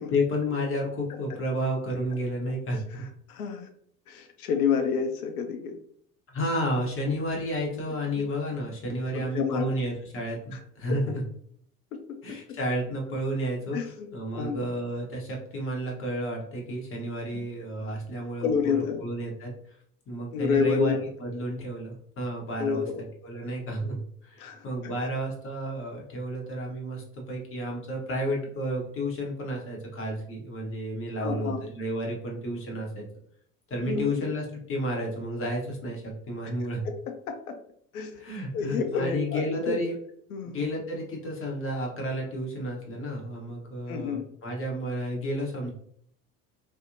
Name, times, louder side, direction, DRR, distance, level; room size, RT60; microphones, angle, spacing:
voice 1, 0.1-3.1 6.3-11.2 12.2-19.8 20.1-20.9 21.2-22.9 23.2-24.0 24.2-33.0 33.7-36.8 38.1-40.0 40.4-45.7, equal, 30° left, -1 dB, 0.9 m, -31 dB
voice 2, 2.7-3.7 4.1-5.8 8.1-8.2 8.9-9.8 10.5-10.6 10.9-11.0 11.9-12.6 13.7-14.7 17.3-17.4 18.4-19.0 20.3-21.1 22.6-23.0 24.4-25.1 31.2-31.6 33.8-34.3 36.8-37.6 37.9-38.2 38.5-39.8 40.3-40.6 43.9-44.2, left 6 dB, 75° left, 5 dB, 0.5 m, -30 dB
2.6 x 2.0 x 2.5 m, 0.65 s
figure-of-eight pair, 65°, 45 cm